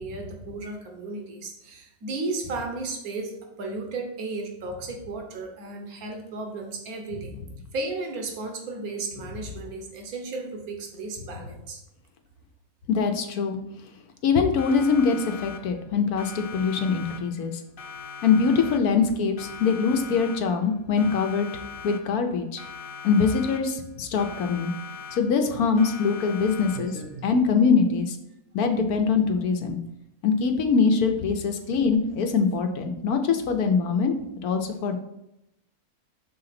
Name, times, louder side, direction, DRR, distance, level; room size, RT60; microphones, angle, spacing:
voice 1, 0.0-7.3 7.7-11.8 26.7-27.3, right 3 dB, 80° right, 3 dB, 1.5 m, -34 dB
voice 2, 12.9-13.6 14.2-17.5 18.2-21.5 21.8-22.6 23.0-24.7 25.1-26.9 27.2-28.2 28.5-29.8 30.2-34.9, left 5 dB, 90° left, 6 dB, 1.3 m, -23 dB
Siren, 14.6-15.9 16.2-17.5 17.8-19.1 19.4-20.7 21.0-22.3 22.6-23.9 24.2-25.5 25.8-27.1, left 6 dB, 45° left, 0.9 m, -41 dB
6.3 x 3.9 x 5.8 m, 0.85 s
omnidirectional pair, 1.5 m